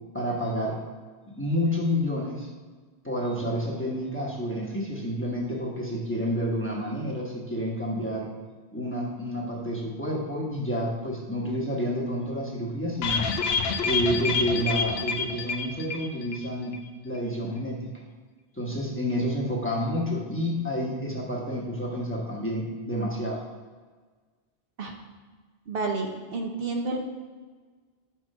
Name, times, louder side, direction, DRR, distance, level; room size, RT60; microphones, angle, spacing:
voice 1, 0.1-0.8 1.4-2.5 3.0-8.3 8.7-13.3 13.8-16.7 17.0-18.0 18.5-23.4, equal, 10° left, -4 dB, 1.1 m, -29 dB
sound 1, 13.0-16.5 16.7-16.8 17.1-17.2, left 5 dB, 75° left, 0.8 m, -28 dB
voice 2, 25.7-27.1, right 3 dB, 65° right, 1 dB, 1.0 m, -30 dB
6.1 x 4.3 x 5.4 m, 1.4 s
omnidirectional pair, 1.1 m